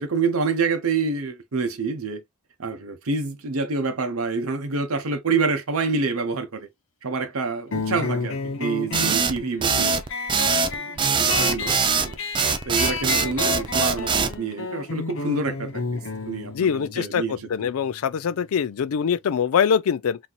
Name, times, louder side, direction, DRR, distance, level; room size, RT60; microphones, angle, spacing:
voice 1, 0.0-2.2 2.6-6.7 7.0-10.0 10.6-12.2 12.7-17.7, right 4 dB, 90° right, 0.8 m, -27 dB
sound 1, 7.7-18.8, left 4 dB, 65° left, 0.8 m, -32 dB
sound 2, 8.9-14.4, right 5 dB, 25° right, 0.4 m, -22 dB
voice 2, 16.5-20.2, left 7 dB, 85° left, 0.4 m, -23 dB
4.2 x 2.8 x 2.3 m
head